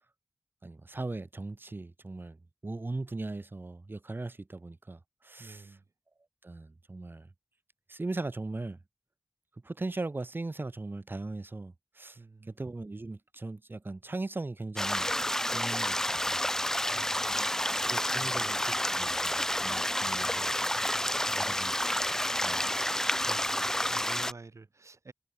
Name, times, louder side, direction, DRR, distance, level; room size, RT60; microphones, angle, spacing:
voice 1, 0.6-2.4 2.6-5.7 6.4-7.3 7.9-8.8 9.6-12.2 12.5-15.1 15.5-16.4 17.8-20.5 20.8-21.0 21.4-22.0 22.4-22.6 23.9-24.0, right 2 dB, 40° right, 1.4 m, -39 dB
voice 2, 5.4-5.8 12.2-12.5 16.9-17.6 18.2-18.4 21.2-21.5 23.2-25.1, right 3 dB, 60° right, 4.0 m, -50 dB
sound 1, 14.8-24.3, left 1 dB, 10° left, 0.5 m, -30 dB
wide cardioid pair, 80°, 6 cm